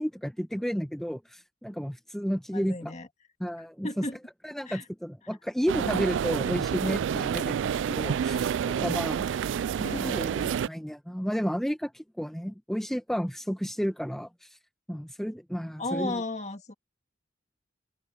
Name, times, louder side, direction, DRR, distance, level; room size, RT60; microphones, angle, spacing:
voice 1, 0.0-2.9 3.4-4.0 4.4-9.3 9.9-14.6 14.9-16.2, equal, ahead, 1.0 m, -32 dB
voice 2, 2.5-3.1 3.8-4.2 4.7-4.8 9.8-10.6 15.8-16.7, left 2 dB, 35° left, 2.0 m, -35 dB
sound 1, 5.7-10.7, right 8 dB, 80° right, 0.3 m, -28 dB
head